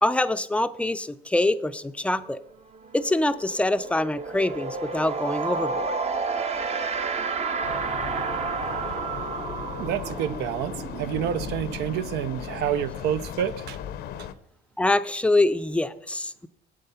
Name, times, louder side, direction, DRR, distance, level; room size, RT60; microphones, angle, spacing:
voice 1, 0.0-2.4 2.9-5.9 14.8-16.5, left 2 dB, 5° left, 0.4 m, -25 dB
sound 1, 2.3-2.4 2.7-13.3, right 4 dB, 40° right, 0.8 m, -31 dB
sound 2, 7.6-14.3, left 9 dB, 75° left, 0.7 m, -37 dB
voice 2, 9.8-13.8, right 10 dB, 75° right, 0.6 m, -28 dB
8.0 x 7.7 x 5.6 m
cardioid pair, 110°, 17 cm